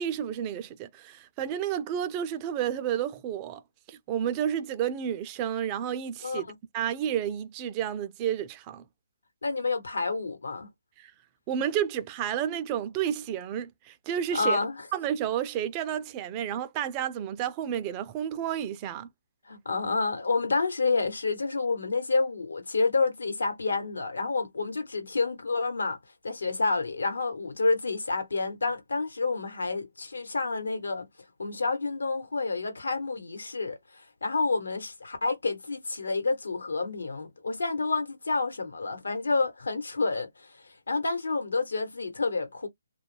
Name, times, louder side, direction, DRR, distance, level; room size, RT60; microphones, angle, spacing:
voice 1, 0.0-3.6 3.9-6.5 6.7-8.8 11.0-11.1 11.5-14.6 14.9-19.1, right 9 dB, 20° right, 0.3 m, -31 dB
voice 2, 6.2-6.5 9.4-10.7 14.3-14.7 19.5-26.0 26.2-31.1 31.4-42.7, left 3 dB, 85° left, 1.0 m, -29 dB
2.3 x 2.1 x 3.2 m
hypercardioid pair, 160°, 0 cm